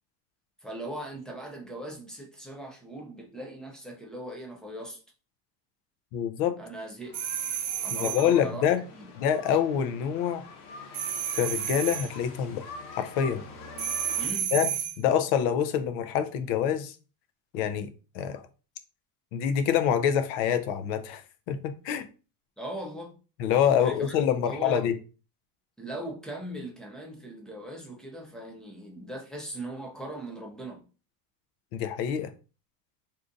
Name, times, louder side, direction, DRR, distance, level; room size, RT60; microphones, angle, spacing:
voice 1, 0.6-5.0 6.6-7.1 7.8-9.0 14.2-14.5 22.6-23.1 23.8-24.9 25.8-30.8, right 1 dB, ahead, 0.4 m, -39 dB
voice 2, 6.1-6.6 8.0-8.8 9.2-10.5 11.4-12.6 13.0-13.4 14.5-16.9 17.5-17.9 18.1-18.4 19.3-21.2 21.5-22.1 23.4-24.9 31.7-32.3, left 9 dB, 50° left, 0.6 m, -26 dB
sound 1, 7.0-14.3, left 3 dB, 80° left, 1.1 m, -45 dB
sound 2, 7.1-8.3 10.9-12.1 13.8-15.0, right 9 dB, 65° right, 0.7 m, -31 dB
2.7 x 2.4 x 3.7 m
supercardioid pair, 135°, 47 cm